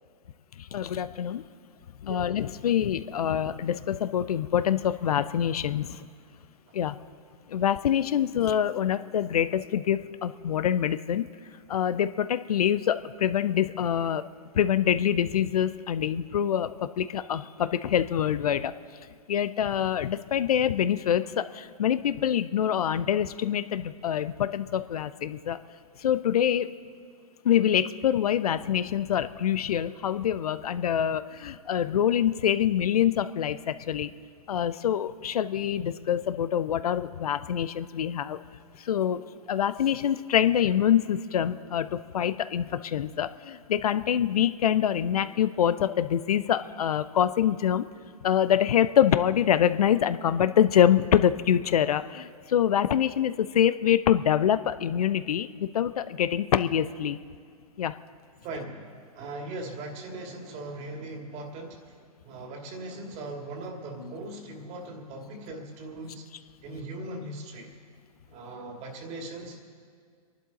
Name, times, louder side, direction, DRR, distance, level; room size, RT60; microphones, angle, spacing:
voice 1, 0.6-1.4 2.0-6.0 6.7-7.0 7.5-11.3 11.7-14.3 14.5-18.7 19.3-25.6 26.0-26.7 27.4-34.1 34.5-38.4 38.8-47.9 48.2-57.2 57.8-57.9, left 9 dB, 75° left, 13 dB, 0.6 m, -25 dB
voice 2, 58.4-62.0 62.2-66.3 66.6-67.7 68.3-69.6, right 2 dB, 35° right, 3 dB, 2.4 m, -39 dB
25.5 x 11.5 x 4.1 m, 2.1 s
hypercardioid pair, 120°, 19 cm